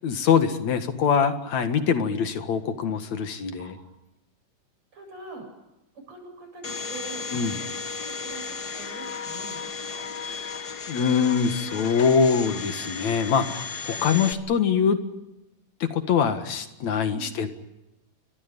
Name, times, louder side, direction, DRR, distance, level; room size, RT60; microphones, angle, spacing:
voice 1, 0.0-3.7 7.3-7.6 10.9-15.0 15.8-17.5, left 6 dB, 70° left, 8 dB, 3.0 m, -23 dB
voice 2, 4.9-5.5 5.9-7.7 8.0-10.1 13.9-14.4 17.1-17.3, right 3 dB, 65° right, 4 dB, 9.1 m, -44 dB
Domestic sounds home sounds, 6.6-14.3, left 5 dB, 50° left, 1.3 m, -34 dB
30.0 x 24.0 x 5.3 m, 0.94 s
omnidirectional pair, 3.3 m